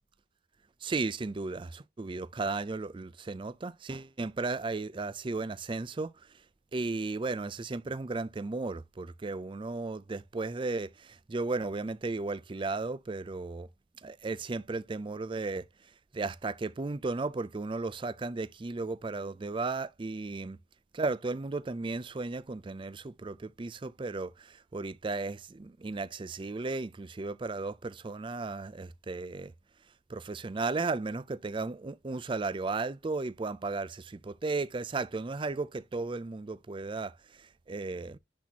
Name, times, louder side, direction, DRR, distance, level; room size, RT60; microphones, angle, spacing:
voice 1, 0.8-6.1 6.7-13.7 14.0-15.7 16.1-20.6 20.9-29.5 30.1-38.2, right 3 dB, 25° right, 0.4 m, -35 dB
10.5 x 4.0 x 2.8 m
head